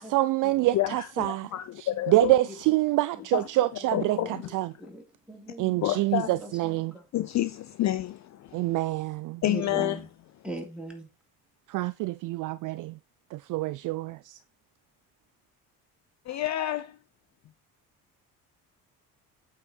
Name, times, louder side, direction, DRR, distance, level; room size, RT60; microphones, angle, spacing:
voice 1, 0.0-1.5 1.8-4.2 4.5-4.7 5.6-6.9 8.5-9.4 11.7-13.0 13.3-14.4, right 17 dB, 45° right, 0.4 m, -26 dB
voice 2, 0.7-2.3 3.3-3.5 3.9-4.3 5.8-6.4 7.1-8.8 9.4-9.9 16.3-17.0, left 13 dB, 40° left, 0.5 m, -29 dB
voice 3, 2.2-2.6 3.2-4.5 4.8-7.1 9.4-10.1 10.4-11.1, right 1 dB, ahead, 2.9 m, -41 dB
8.4 x 4.9 x 4.4 m
hypercardioid pair, 55°, 45 cm